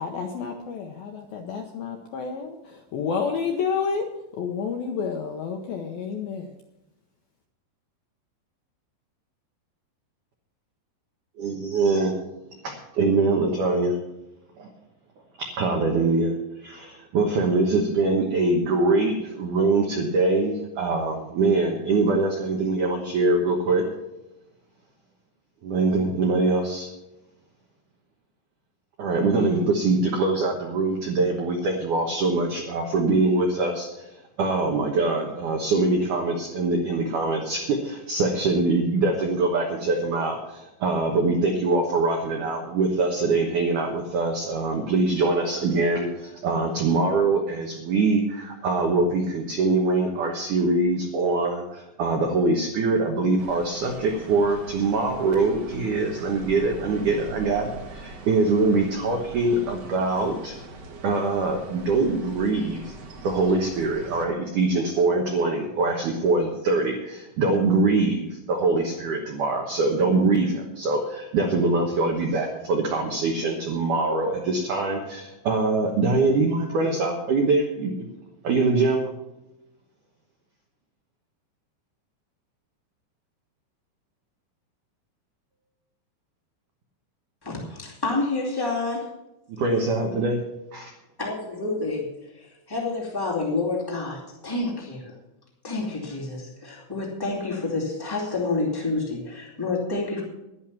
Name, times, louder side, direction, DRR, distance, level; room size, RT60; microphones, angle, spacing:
voice 1, 0.0-4.1 4.3-6.6, left 6 dB, 80° left, 3 dB, 2.2 m, -30 dB
voice 2, 11.4-12.2 12.6-14.0 14.6-14.7 15.4-23.8 25.6-26.9 29.0-60.6 61.0-62.9 63.2-78.1 78.4-79.1 89.6-90.4 90.7-90.9, right 3 dB, 75° right, 2 dB, 1.8 m, -23 dB
sound 1, 53.4-64.2, right 2 dB, 60° right, 1.7 m, -42 dB
voice 3, 87.4-89.1 91.2-95.1 95.6-100.2, left 3 dB, 35° left, -3 dB, 0.3 m, -29 dB
11.0 x 10.5 x 6.0 m, 0.94 s
omnidirectional pair, 5.4 m